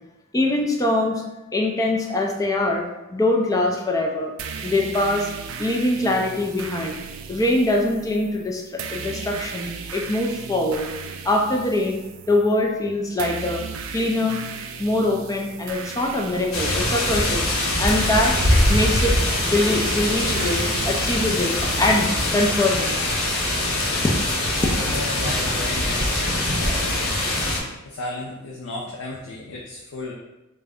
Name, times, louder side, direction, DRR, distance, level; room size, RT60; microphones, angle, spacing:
voice 1, 0.3-1.2 1.5-2.8 3.1-4.3 4.6-5.3 5.6-7.0 7.3-10.9 11.2-13.6 13.9-14.4 14.8-17.5 17.8-23.0 24.0-24.1, left 1 dB, 15° left, 1 dB, 0.4 m, -23 dB
sound 1, 4.4-22.0, right 5 dB, 75° right, 0.4 m, -36 dB
sound 2, 16.5-27.6, left 1 dB, 70° left, 0.9 m, -23 dB
voice 2, 24.6-30.1, left 2 dB, 85° left, -3 dB, 0.5 m, -35 dB
3.7 x 2.2 x 3.4 m, 0.99 s
head